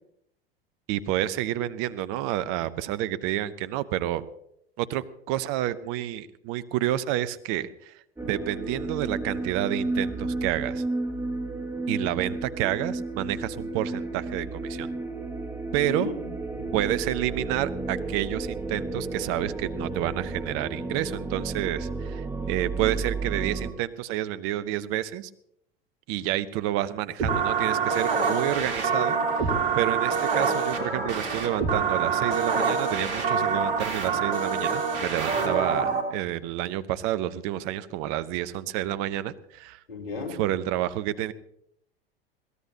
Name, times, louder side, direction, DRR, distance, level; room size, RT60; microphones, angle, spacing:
voice 1, 0.9-4.2 4.8-10.8 11.9-14.9 15.7-16.1 16.7-25.3 26.1-39.8 40.3-41.3, right 13 dB, 50° right, 14 dB, 0.9 m, -29 dB
sound 1, 8.2-23.7, right 3 dB, 10° right, 2.1 m, -32 dB
voice 2, 15.8-16.8 35.7-35.8 39.9-40.4, left 3 dB, 75° left, 3 dB, 3.5 m, -36 dB
sound 2, 27.2-36.0, right 5 dB, 65° right, 3.4 m, -26 dB
22.0 x 18.0 x 2.9 m, 0.73 s
figure-of-eight pair, 80°, 30 cm